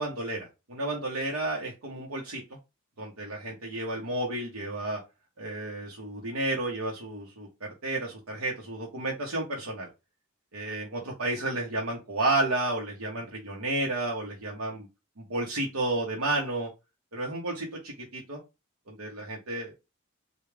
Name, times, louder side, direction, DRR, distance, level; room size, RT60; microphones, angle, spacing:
voice 1, 0.0-2.4 3.0-5.0 5.4-9.9 10.5-14.9 15.2-16.7 17.1-18.4 18.9-19.7, right 2 dB, 85° right, -2 dB, 0.9 m, -32 dB
3.2 x 2.3 x 3.4 m, 0.26 s
head